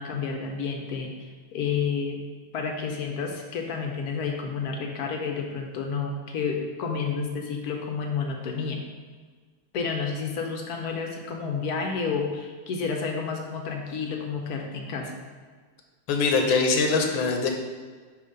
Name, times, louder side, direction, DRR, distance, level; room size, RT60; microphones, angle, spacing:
voice 1, 0.0-2.2 2.5-8.8 9.7-15.1, left 5 dB, 65° left, 2 dB, 1.0 m, -30 dB
voice 2, 16.1-17.5, left 4 dB, 85° left, 3 dB, 1.5 m, -22 dB
5.9 x 3.3 x 5.0 m, 1.5 s
omnidirectional pair, 2.1 m